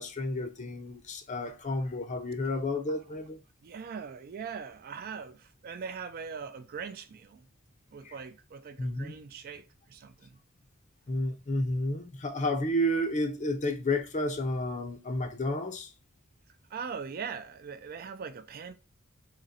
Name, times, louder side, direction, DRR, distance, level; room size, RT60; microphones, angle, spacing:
voice 1, 0.0-3.4 8.0-8.1 8.8-9.1 11.1-15.9, left 1 dB, 35° left, 0.6 m, -31 dB
voice 2, 3.6-7.5 7.9-10.4 16.7-18.7, right 6 dB, 45° right, 0.4 m, -41 dB
3.7 x 3.0 x 2.8 m
head